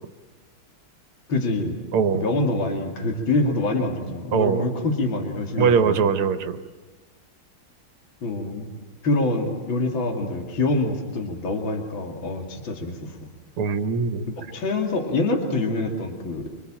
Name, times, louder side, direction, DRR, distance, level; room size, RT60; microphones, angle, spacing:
voice 1, 1.3-1.8 2.1-6.0 8.2-8.7 9.0-13.2 14.4-16.5, left 2 dB, 65° left, 3 dB, 3.2 m, -25 dB
voice 2, 1.9-2.3 4.3-4.7 5.6-6.6 13.6-14.3, right 6 dB, 85° right, 9 dB, 2.0 m, -21 dB
26.0 x 26.0 x 8.9 m, 1.3 s
omnidirectional pair, 2.3 m